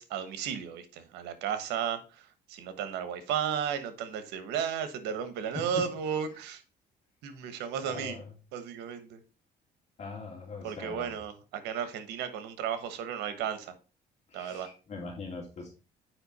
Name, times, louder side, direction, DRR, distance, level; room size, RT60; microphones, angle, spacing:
voice 1, 0.0-6.6 7.2-8.2 8.5-9.2 10.6-13.7 14.3-14.7, right 8 dB, 90° right, 11 dB, 1.2 m, -34 dB
voice 2, 7.8-8.3 10.0-11.1 14.3-15.7, left 4 dB, 40° left, -2 dB, 3.0 m, -41 dB
7.9 x 5.2 x 4.1 m, 0.34 s
cardioid pair, 110°, 17 cm